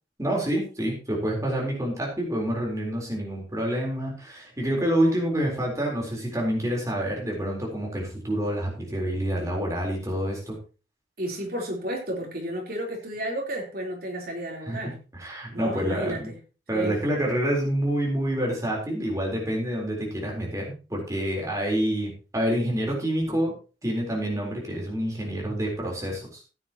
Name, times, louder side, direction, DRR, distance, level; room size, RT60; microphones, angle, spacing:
voice 1, 0.2-10.6 14.7-16.3 16.7-23.5 23.8-26.4, right 1 dB, 20° right, -1 dB, 4.1 m, -27 dB
voice 2, 11.2-15.0 15.5-16.3 16.7-17.0, right 1 dB, 55° right, -1 dB, 3.8 m, -32 dB
15.5 x 9.5 x 3.0 m, 0.34 s
head